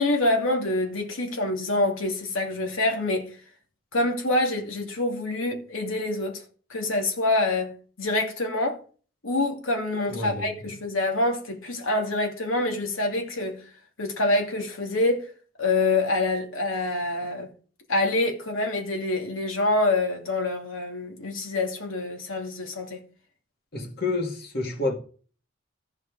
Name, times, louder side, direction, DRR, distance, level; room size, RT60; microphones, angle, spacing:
voice 1, 0.0-3.3 3.9-6.4 6.7-8.8 9.2-13.6 14.0-15.3 15.6-17.5 17.9-23.0, left 2 dB, 90° left, 2.6 m, -26 dB
voice 2, 10.1-10.7 23.7-24.9, left 2 dB, 50° left, 2.3 m, -29 dB
14.5 x 5.0 x 4.9 m
head